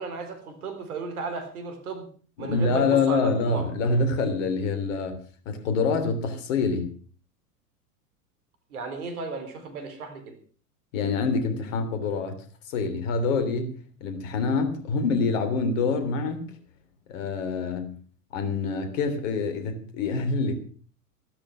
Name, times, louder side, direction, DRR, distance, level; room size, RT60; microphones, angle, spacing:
voice 1, 0.0-2.1 2.4-3.7 8.7-10.4, right 4 dB, 70° right, 9 dB, 4.2 m, -35 dB
voice 2, 2.4-5.2 5.5-6.9 10.9-12.4 12.7-13.7 14.0-16.5 17.1-17.9 18.3-20.6, left 4 dB, 55° left, 8 dB, 3.5 m, -26 dB
15.0 x 12.5 x 5.9 m, 0.42 s
figure-of-eight pair, 90°, 46 cm